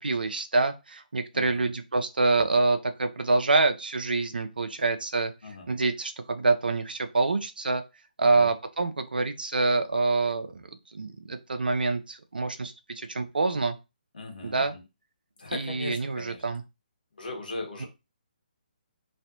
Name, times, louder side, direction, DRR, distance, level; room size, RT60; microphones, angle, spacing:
voice 1, 0.0-5.3 5.7-7.8 8.2-10.6 10.9-13.8 14.4-14.7 15.5-16.6, right 3 dB, 75° right, 9 dB, 0.6 m, -26 dB
voice 2, 1.3-1.7 5.4-5.7 8.2-8.5 14.1-14.8 15.4-16.4 17.2-17.9, left 2 dB, 65° left, 1 dB, 1.5 m, -39 dB
3.1 x 2.6 x 2.8 m, 0.26 s
figure-of-eight pair, 140°, 5 cm